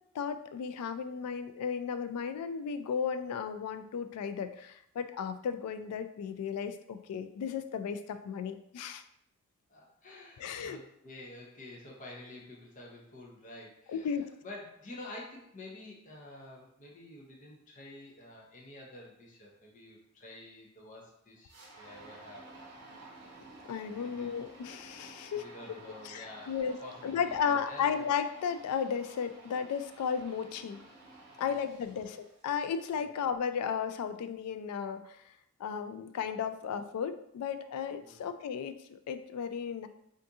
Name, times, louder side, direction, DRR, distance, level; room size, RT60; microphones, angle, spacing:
voice 1, 0.1-9.0 10.4-10.8 13.9-14.4 23.7-25.5 26.0-26.8 27.0-30.8 31.4-35.3 35.6-39.9, left 7 dB, 90° left, 11 dB, 0.3 m, -34 dB
voice 2, 9.7-14.1 14.4-22.5 24.0-24.3 25.3-28.0 31.4-31.6 31.8-32.1 33.0-33.1 38.0-38.3, left 1 dB, 35° left, -2 dB, 0.6 m, -49 dB
sound 1, 21.5-32.8, right 2 dB, 50° right, 0.8 m, -53 dB
2.6 x 2.5 x 3.5 m, 0.74 s
head